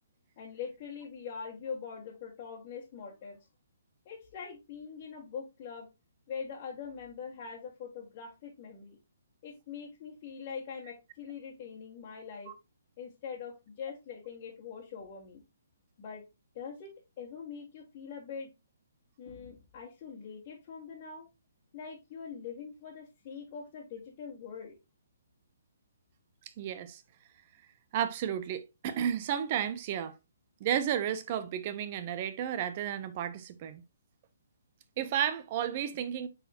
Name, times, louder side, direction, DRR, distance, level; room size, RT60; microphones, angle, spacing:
voice 1, 0.4-3.4 4.1-5.9 6.3-9.0 9.4-12.5 13.0-15.4 16.0-16.2 16.5-18.5 19.2-21.3 21.7-24.8, left 6 dB, 35° left, 1.7 m, -43 dB
voice 2, 26.6-27.0 27.9-30.1 30.6-33.8 35.0-36.3, right 9 dB, 35° right, 0.6 m, -32 dB
8.8 x 4.1 x 2.8 m
hypercardioid pair, 155°, 0 cm